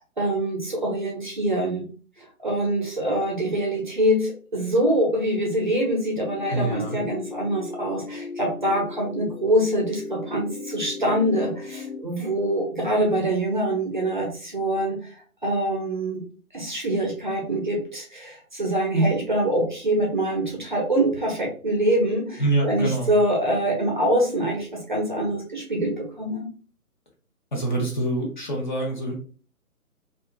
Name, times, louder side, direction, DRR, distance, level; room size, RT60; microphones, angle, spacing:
voice 1, 0.2-1.9 2.2-16.2 16.5-26.5, right 1 dB, 35° right, -1 dB, 0.5 m, -24 dB
sound 1, 6.2-12.0, left 4 dB, 75° left, 0.6 m, -37 dB
voice 2, 6.5-7.0 22.4-23.1 27.5-29.1, right 2 dB, 35° left, -2 dB, 0.7 m, -25 dB
2.6 x 2.3 x 2.4 m, 0.40 s
figure-of-eight pair, 145°, 43 cm